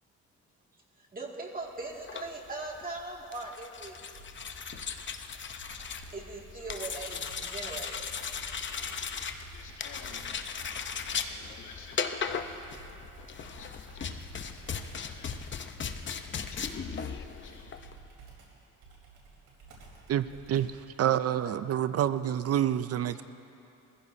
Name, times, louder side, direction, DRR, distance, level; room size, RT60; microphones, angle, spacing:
voice 1, 1.0-4.0 6.1-8.0, right 3 dB, 30° right, -1 dB, 2.2 m, -40 dB
sound 1, 1.9-17.9, left 6 dB, 40° left, 0.8 m, -37 dB
Computer keyboard, 4.1-10.4 12.2-20.9, right 4 dB, 80° right, 4.1 m, -54 dB
voice 2, 6.5-7.0 8.6-10.3 11.2-12.6 13.4-17.0 17.4-17.6, left 5 dB, 75° left, -4 dB, 2.9 m, -53 dB
voice 3, 20.1-23.2, right 11 dB, 55° right, 13 dB, 0.5 m, -28 dB
22.5 x 15.5 x 2.8 m, 2.8 s
cardioid pair, 90°, 30 cm